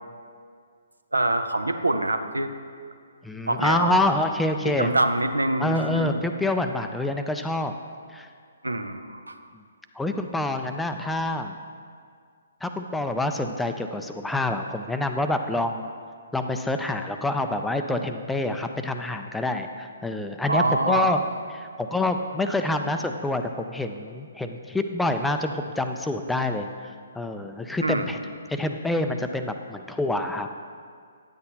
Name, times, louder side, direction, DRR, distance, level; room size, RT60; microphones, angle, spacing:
voice 1, 1.1-2.5 3.5-4.0 4.6-6.2 8.6-9.4 20.5-21.2 27.8-28.2, right 2 dB, 80° right, 9 dB, 0.5 m, -25 dB
voice 2, 3.2-4.9 5.6-7.7 8.1-8.3 10.0-11.6 12.6-15.9 16.3-21.2 21.5-26.7 27.2-28.2 28.5-30.5, left 2 dB, 5° left, 6 dB, 0.3 m, -27 dB
10.0 x 8.1 x 2.8 m, 2.1 s
figure-of-eight pair, 130°, 0 cm